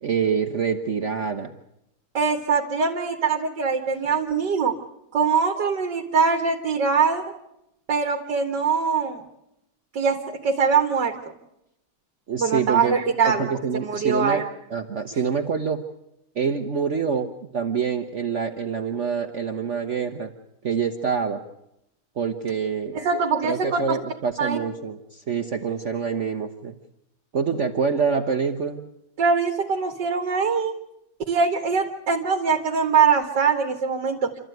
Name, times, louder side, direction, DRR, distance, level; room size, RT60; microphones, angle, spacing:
voice 1, 0.0-1.5 12.3-13.0 13.2-15.8 16.3-20.3 20.6-21.4 22.2-23.0 23.4-26.8 27.3-28.9, right 6 dB, 50° right, 5 dB, 1.2 m, -26 dB
voice 2, 2.1-4.7 5.1-7.2 7.9-9.2 9.9-11.1 12.4-13.5 13.8-14.4 22.9-24.0 24.4-24.6 29.2-30.7 31.3-34.3, right 5 dB, 80° right, 2 dB, 2.3 m, -22 dB
27.5 x 13.5 x 9.2 m, 0.84 s
omnidirectional pair, 1.8 m